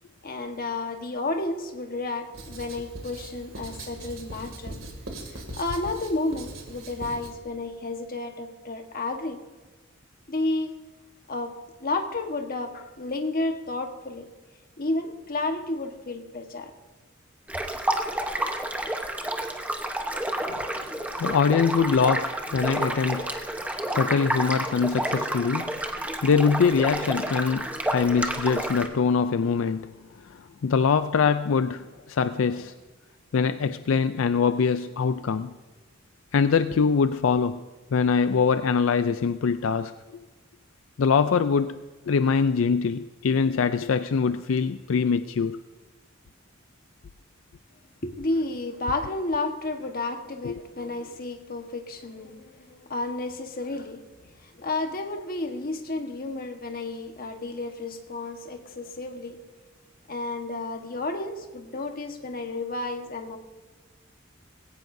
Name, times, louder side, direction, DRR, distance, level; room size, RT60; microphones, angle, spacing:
voice 1, 0.2-4.8 5.3-9.4 10.3-10.8 11.3-14.3 14.8-16.7 48.0-59.4 60.1-63.4, left 2 dB, 45° left, 1.4 m, -31 dB
Writing, 2.3-7.3, right 2 dB, 85° right, 2.5 m, -41 dB
sound 1, 17.5-28.9, right 1 dB, 5° right, 1.0 m, -30 dB
voice 2, 21.0-23.3 23.9-25.7 26.2-29.9 30.2-32.7 33.3-35.6 36.3-37.7 37.9-39.9 41.0-41.8 42.1-45.6 50.4-50.6, left 5 dB, 80° left, 0.4 m, -23 dB
20.0 x 17.0 x 2.7 m
head